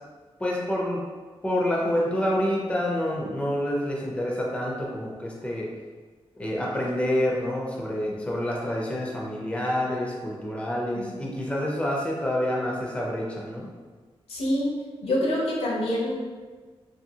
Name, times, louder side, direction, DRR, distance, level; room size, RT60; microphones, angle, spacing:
voice 1, 0.4-1.1 1.4-5.7 6.4-13.7, left 1 dB, 10° left, -3 dB, 0.4 m, -27 dB
voice 2, 14.3-14.7 15.0-16.2, left 1 dB, 75° left, -4 dB, 0.7 m, -26 dB
2.6 x 2.6 x 2.7 m, 1.4 s
wide cardioid pair, 140°, 10 cm